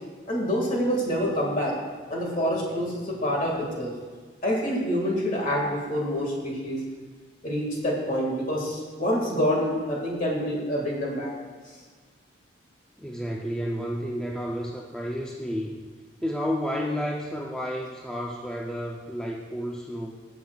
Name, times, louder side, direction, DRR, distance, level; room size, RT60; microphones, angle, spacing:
voice 1, 0.3-1.7 2.1-3.9 4.4-6.8 7.4-11.3, equal, 40° left, -2 dB, 1.8 m, -27 dB
voice 2, 13.0-15.8 16.2-20.1, equal, 5° left, -2 dB, 0.5 m, -31 dB
15.5 x 7.3 x 2.3 m, 1.5 s
head